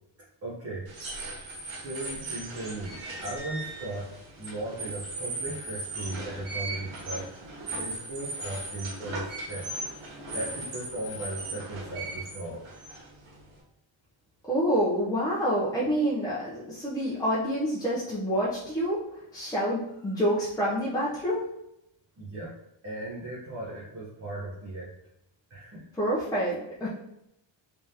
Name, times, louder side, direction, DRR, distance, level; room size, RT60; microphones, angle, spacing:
voice 1, 0.4-0.9 1.7-4.1 4.4-7.3 7.7-9.7 10.3-12.7 22.2-22.5 22.8-24.9 25.5-25.8, right 1 dB, 30° right, -6 dB, 0.9 m, -37 dB
sound 1, 0.9-13.6, right 2 dB, 85° right, 1.3 m, -38 dB
voice 2, 14.5-19.0 19.3-21.4 26.0-26.9, equal, 10° left, -7 dB, 0.6 m, -27 dB
3.6 x 3.4 x 2.8 m, 0.82 s
cardioid pair, 150°, 47 cm